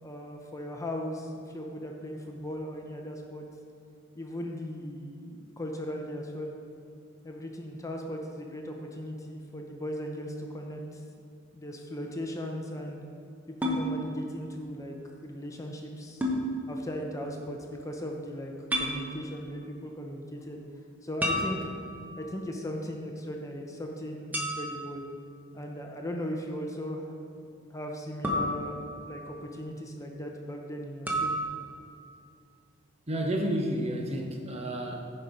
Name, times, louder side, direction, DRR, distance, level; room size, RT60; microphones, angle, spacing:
voice 1, 0.0-3.4 4.1-6.5 7.2-11.0 11.5-13.0 13.5-15.0 15.2-16.3 16.7-20.6 21.0-21.6 22.2-25.0 25.5-27.1 27.5-31.3, equal, 15° left, 1 dB, 0.7 m, -38 dB
sound 1, 13.6-13.8 16.2-16.4 18.7-19.0 21.2-22.1 24.3-24.9 28.2-29.2 31.1-31.4, equal, 10° right, 1.0 m, -30 dB
voice 2, 33.1-35.2, right 1 dB, 30° right, 2 dB, 0.8 m, -31 dB
10.5 x 5.4 x 5.1 m, 2.5 s
head